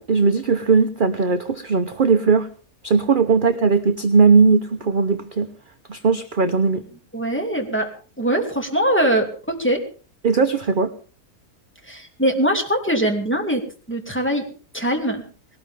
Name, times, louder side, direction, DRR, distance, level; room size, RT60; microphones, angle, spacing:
voice 1, 0.0-2.5 2.8-5.5 5.9-6.8 10.2-10.9, right 4 dB, 40° right, 8 dB, 0.9 m, -18 dB
voice 2, 7.1-7.9 8.2-9.8 11.8-14.5 14.7-15.2, right 1 dB, 5° left, 3 dB, 2.9 m, -22 dB
20.0 x 18.5 x 3.6 m, 0.40 s
omnidirectional pair, 1.6 m